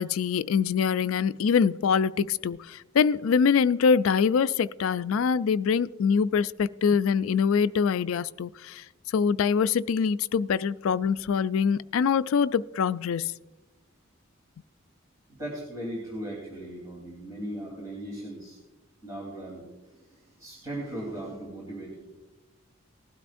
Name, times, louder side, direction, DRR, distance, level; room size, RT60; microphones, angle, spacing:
voice 1, 0.0-13.3, left 6 dB, 75° left, 0.3 m, -24 dB
voice 2, 15.3-18.6 19.0-22.0, right 1 dB, 15° right, 3.3 m, -38 dB
19.0 x 12.5 x 2.6 m
head